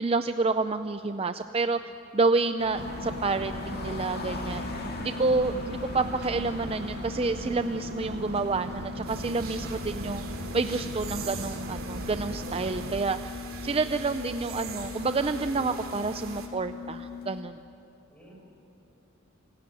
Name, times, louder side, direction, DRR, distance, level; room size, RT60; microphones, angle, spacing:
voice 1, 0.0-1.8 2.1-4.6 5.0-10.2 10.5-17.6, right 3 dB, 25° right, 9 dB, 0.5 m, -29 dB
sound 1, 2.6-17.4, left 5 dB, 45° left, 2.2 m, -40 dB
sound 2, 2.8-13.0, right 2 dB, 50° right, 1.0 m, -39 dB
voice 2, 4.3-4.8 18.1-18.3, right 1 dB, 5° left, -2 dB, 6.6 m, -53 dB
sound 3, 9.1-16.5, right 3 dB, 65° right, 3.0 m, -41 dB
27.5 x 17.0 x 9.7 m, 2.7 s
head